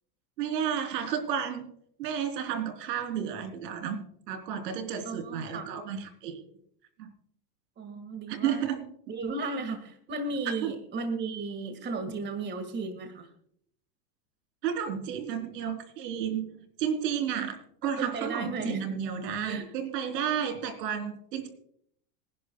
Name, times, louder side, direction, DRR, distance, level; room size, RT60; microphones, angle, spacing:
voice 1, 0.4-1.7 2.0-6.4 7.0-7.1 8.3-8.9 10.6-10.7 14.6-21.5, right 8 dB, 75° right, 6 dB, 3.7 m, -32 dB
voice 2, 5.0-5.7 7.8-8.7 9.1-13.3 17.8-19.0 19.4-19.6, right 3 dB, 20° right, 7 dB, 2.0 m, -35 dB
26.5 x 11.0 x 2.3 m, 0.67 s
supercardioid pair, 130°, 49 cm